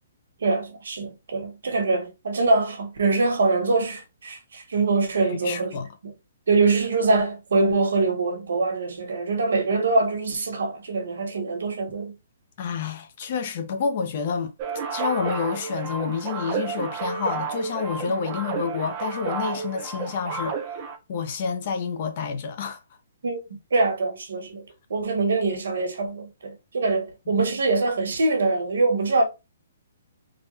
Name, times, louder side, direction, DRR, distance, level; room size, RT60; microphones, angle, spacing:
voice 1, 0.4-5.7 6.0-6.1 6.5-12.1 23.2-23.4 23.7-29.2, right 3 dB, 70° right, 1.2 m, -24 dB
voice 2, 5.3-5.9 12.6-14.5 14.9-20.8 21.1-22.8 27.3-27.4, left 6 dB, 30° left, 0.5 m, -29 dB
sound 1, 14.6-21.0, right 5 dB, 20° right, 0.5 m, -31 dB
3.5 x 2.2 x 3.1 m
hypercardioid pair, 175°, 0 cm